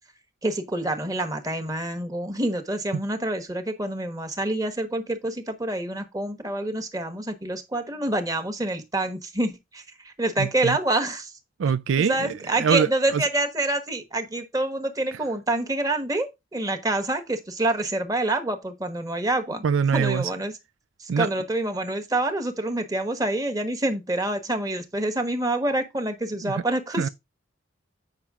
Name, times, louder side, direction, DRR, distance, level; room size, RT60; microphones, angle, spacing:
voice 1, 0.4-11.3 12.0-19.6 19.9-20.5 21.0-27.1, right 2 dB, 20° right, 1.2 m, -27 dB
voice 2, 10.4-10.8 11.6-13.3 15.1-15.2 19.6-20.3 21.1-21.3 26.4-26.6 27.0-27.1, right 6 dB, 70° right, 0.4 m, -24 dB
8.8 x 5.7 x 3.6 m
head